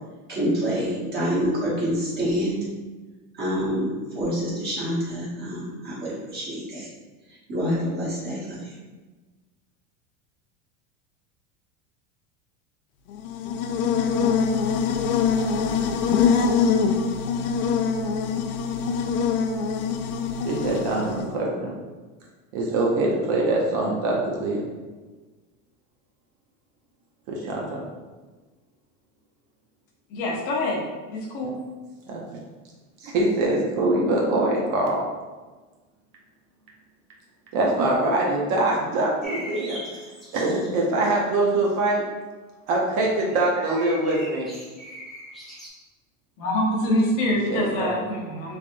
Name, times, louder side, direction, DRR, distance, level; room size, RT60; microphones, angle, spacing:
voice 1, 0.3-2.6 3.3-6.9 7.3-8.7, equal, 25° right, -7 dB, 1.0 m, -27 dB
Buzz, 13.1-21.3, left 6 dB, 85° left, 0.5 m, -24 dB
voice 2, 20.4-21.7 22.5-24.6 27.3-27.8 31.4-31.5 32.1-32.4 33.0-35.1 37.5-39.8 40.3-42.0 42.7-44.5 47.5-48.0, right 2 dB, 45° right, -2 dB, 0.6 m, -23 dB
voice 3, 30.1-31.6 46.4-48.6, left 1 dB, 45° left, -2 dB, 0.8 m, -25 dB
sound 1, 39.2-40.8 43.2-45.7, equal, ahead, 0.3 m, -40 dB
3.4 x 3.4 x 2.5 m, 1.3 s
supercardioid pair, 160°, 41 cm